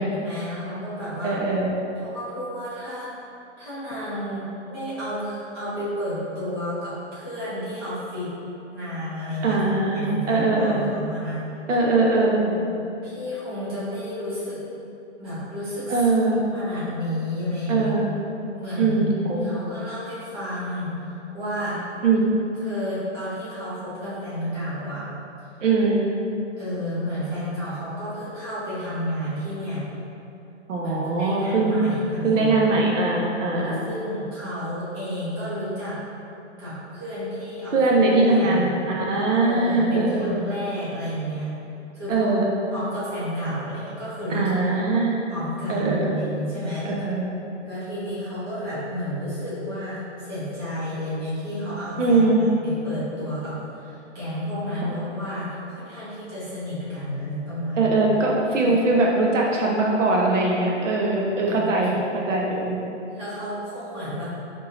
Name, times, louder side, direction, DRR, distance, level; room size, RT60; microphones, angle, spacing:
voice 1, 0.0-1.4 2.0-3.1 3.6-8.3 8.7-11.4 12.3-12.7 13.0-14.6 15.2-16.1 16.5-17.9 18.6-21.8 22.5-25.0 26.6-29.8 30.8-33.0 33.5-36.0 36.6-37.8 38.3-38.7 39.4-41.5 41.9-42.4 42.7-44.5 45.3-46.9 47.6-58.0 58.5-58.7 61.1-62.0 63.1-64.2, equal, 20° right, -12 dB, 1.1 m, -31 dB
voice 2, 1.2-1.7 9.4-10.8 11.7-12.4 15.9-16.4 17.7-18.1 18.8-19.6 22.0-22.4 25.6-26.1 30.7-31.8 32.2-33.9 37.7-40.4 42.1-42.5 44.3-45.2 45.7-46.2 46.8-47.3 52.0-52.4 57.8-62.8, right 3 dB, 85° right, -2 dB, 0.9 m, -21 dB
4.3 x 3.6 x 2.7 m, 2.8 s
hypercardioid pair, 180°, 36 cm